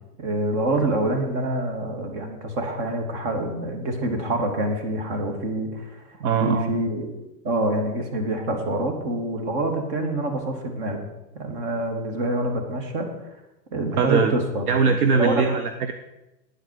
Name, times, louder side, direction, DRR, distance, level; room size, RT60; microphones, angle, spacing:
voice 1, 0.2-7.2 7.4-11.0 11.3-13.1 13.7-14.7 15.1-15.5, right 1 dB, 45° right, 4 dB, 2.6 m, -26 dB
voice 2, 6.2-6.7 14.0-14.3 14.7-15.9, right 5 dB, 65° right, 8 dB, 1.0 m, -21 dB
9.6 x 9.1 x 6.6 m, 0.99 s
hypercardioid pair, 115°, 48 cm